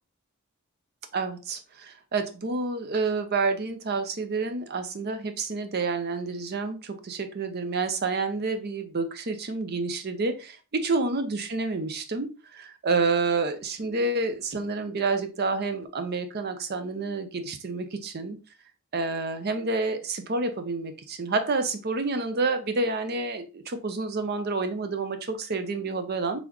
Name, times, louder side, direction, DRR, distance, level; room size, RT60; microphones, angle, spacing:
voice 1, 1.1-18.4 18.9-26.4, right 3 dB, 50° right, 8 dB, 0.6 m, -29 dB
4.1 x 3.4 x 3.0 m, 0.33 s
head